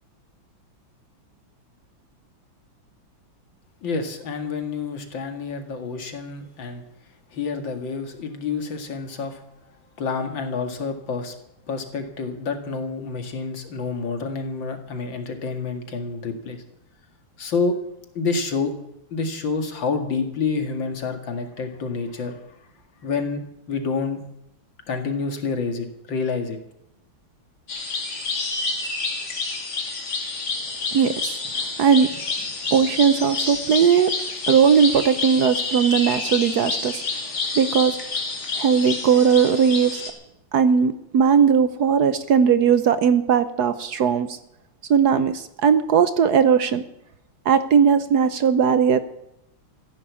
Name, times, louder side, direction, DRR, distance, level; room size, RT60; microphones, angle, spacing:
voice 1, 3.8-6.8 7.3-9.4 10.0-11.3 11.7-16.6 17.4-17.8 18.1-18.7 19.1-22.4 23.0-23.4 23.7-24.2 24.9-26.6, left 4 dB, 70° left, 6 dB, 2.7 m, -28 dB
sound 1, 27.7-40.1, left 3 dB, 55° left, 3.1 m, -29 dB
voice 2, 30.9-32.1 32.7-34.1 34.5-37.0 37.5-38.0 38.5-40.0 40.5-44.4 44.9-46.8 47.5-49.0, right 7 dB, 60° right, 12 dB, 1.2 m, -18 dB
15.0 x 11.0 x 8.4 m, 0.82 s
omnidirectional pair, 2.1 m